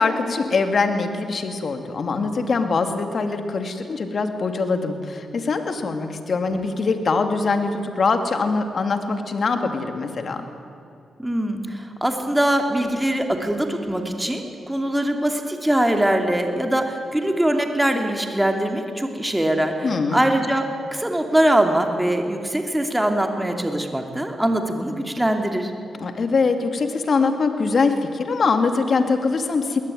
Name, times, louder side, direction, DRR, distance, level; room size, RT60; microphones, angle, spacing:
voice 1, 0.0-10.4 19.8-20.2 26.0-29.8, left 4 dB, 60° left, 6 dB, 2.7 m, -23 dB
voice 2, 11.2-20.7 20.9-25.7, right 1 dB, 10° right, 4 dB, 2.8 m, -22 dB
21.0 x 19.0 x 9.4 m, 2.7 s
cardioid pair, 60°, 0 cm